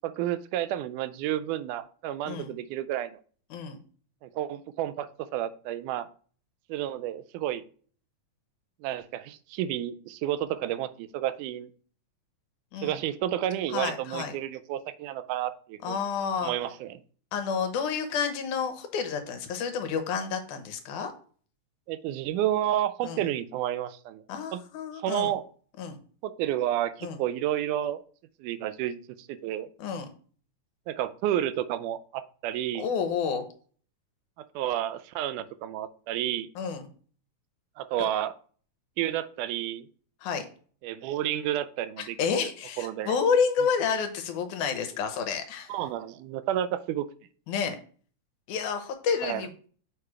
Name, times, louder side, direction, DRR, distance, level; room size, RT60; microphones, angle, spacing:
voice 1, 0.0-3.2 4.2-6.1 6.7-7.6 8.8-11.7 12.8-16.0 16.4-17.0 21.9-24.2 24.5-24.6 25.0-25.4 26.2-28.0 28.4-29.7 30.9-32.9 34.6-36.5 37.8-38.3 39.0-39.9 40.8-42.5 42.8-43.2 45.7-47.1 49.2-49.4, right 12 dB, 85° right, 13 dB, 2.1 m, -31 dB
voice 2, 3.5-3.8 12.7-13.0 13.7-14.4 15.8-16.5 17.3-21.1 23.0-23.2 24.3-25.3 25.8-26.0 27.0-27.2 29.8-30.1 32.8-33.4 36.6-36.9 40.2-40.5 42.0-45.7 47.5-47.8 48.5-49.7, left 6 dB, 80° left, 7 dB, 2.4 m, -30 dB
6.8 x 3.2 x 4.8 m, 0.43 s
omnidirectional pair, 3.5 m